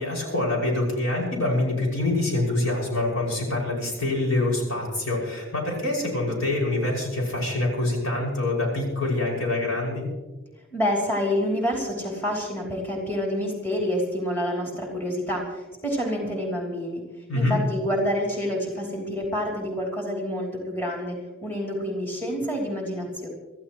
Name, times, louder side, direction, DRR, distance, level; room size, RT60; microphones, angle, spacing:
voice 1, 0.0-10.1 17.3-17.6, left 2 dB, 90° left, -2 dB, 5.9 m, -25 dB
voice 2, 10.7-17.0 17.3-21.2 21.4-23.3, equal, 10° left, -1 dB, 3.0 m, -28 dB
25.0 x 14.0 x 3.1 m, 1.2 s
head